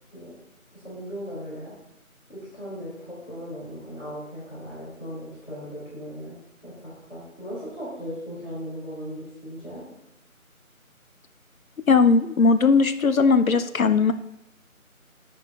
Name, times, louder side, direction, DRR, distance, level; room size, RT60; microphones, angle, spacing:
voice 1, 0.7-1.8 2.3-9.8, equal, 40° left, -9 dB, 2.8 m, -37 dB
voice 2, 11.9-14.1, left 4 dB, 70° left, 11 dB, 0.5 m, -18 dB
9.9 x 7.0 x 2.4 m, 0.84 s
figure-of-eight pair, 175°, 43 cm